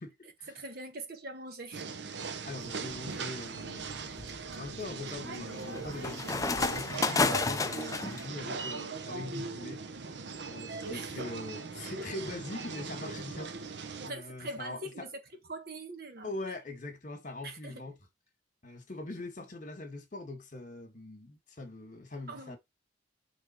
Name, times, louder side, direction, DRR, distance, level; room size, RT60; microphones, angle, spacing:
voice 1, 0.2-1.8 10.9-11.3 14.0-15.2 15.5-16.3 17.4-17.8 22.3-22.6, right 2 dB, 55° right, 1.3 m, -43 dB
sound 1, 1.7-14.1, right 4 dB, 70° right, 0.8 m, -40 dB
voice 2, 2.4-3.9 4.6-10.1 10.4-15.1 16.2-17.9 18.6-22.6, left 2 dB, 40° left, 1.8 m, -42 dB
sound 2, 2.7-3.0 3.6-8.2, left 4 dB, 20° left, 0.4 m, -32 dB
6.6 x 3.5 x 4.4 m
head